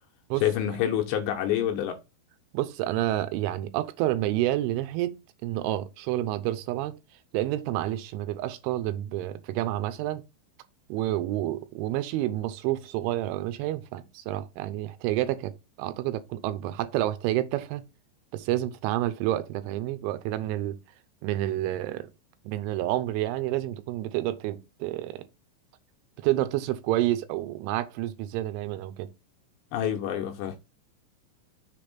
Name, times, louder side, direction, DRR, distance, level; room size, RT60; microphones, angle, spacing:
voice 1, 0.4-2.0 29.7-30.6, left 10 dB, 80° left, 2.7 m, -27 dB
voice 2, 2.5-7.0 7.3-10.2 10.9-17.8 18.3-20.8 21.2-22.1 22.5-25.3 26.2-29.1, right 14 dB, 85° right, 3.1 m, -29 dB
6.9 x 3.4 x 5.8 m
omnidirectional pair, 5.6 m